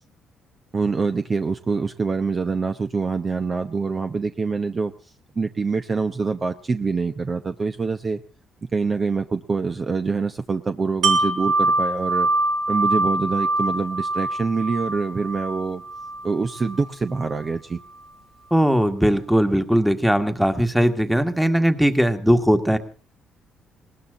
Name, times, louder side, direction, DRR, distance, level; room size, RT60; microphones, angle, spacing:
voice 1, 0.7-8.2 8.7-12.3 12.7-15.8 16.2-17.8, right 4 dB, 30° right, 8 dB, 0.8 m, -25 dB
Wind chime, 11.0-16.8 17.2-17.4, right 2 dB, 65° right, 2.4 m, -24 dB
voice 2, 18.5-22.8, equal, ahead, 8 dB, 1.7 m, -19 dB
20.0 x 19.0 x 3.7 m, 0.36 s
cardioid pair, 105°, 0 cm